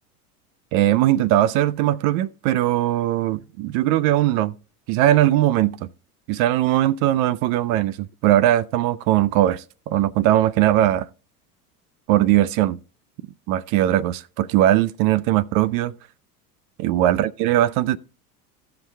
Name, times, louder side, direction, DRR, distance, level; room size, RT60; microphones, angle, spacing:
voice 1, 0.7-4.5 4.9-5.9 6.3-8.0 8.2-11.1 12.1-12.8 13.5-15.9 16.8-18.0, right 13 dB, 55° right, 0.5 m, -19 dB
15.0 x 5.8 x 3.3 m
hypercardioid pair, 85°, 46 cm